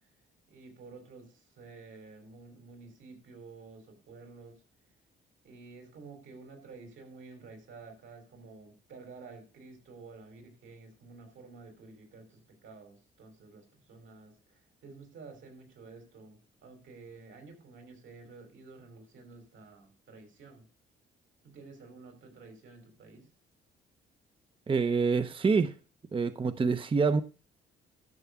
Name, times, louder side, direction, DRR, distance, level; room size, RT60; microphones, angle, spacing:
voice 1, 0.5-4.6 5.4-20.7 21.4-23.3, right 4 dB, 75° right, 5.3 m, -51 dB
voice 2, 24.7-25.7 26.1-27.2, right 5 dB, 25° right, 0.7 m, -26 dB
12.0 x 6.9 x 5.9 m
cardioid pair, 90°, 20 cm